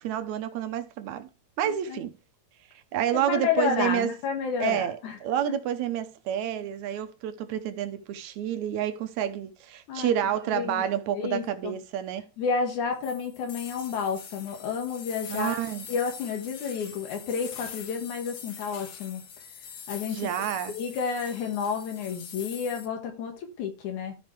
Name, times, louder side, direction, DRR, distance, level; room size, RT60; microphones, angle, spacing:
voice 1, 0.0-1.3 1.6-2.2 2.9-4.2 4.6-12.3 15.3-15.9 20.1-20.8, right 10 dB, 80° right, 2.1 m, -29 dB
voice 2, 1.6-2.0 3.1-5.2 9.9-10.1 10.5-10.8 11.1-11.7 12.4-15.6 15.9-19.2 19.9-20.3 20.7-24.2, left 6 dB, 80° left, 3.0 m, -30 dB
sound 1, 13.0-22.9, left 7 dB, 55° left, 1.6 m, -43 dB
14.0 x 5.2 x 3.2 m
omnidirectional pair, 3.4 m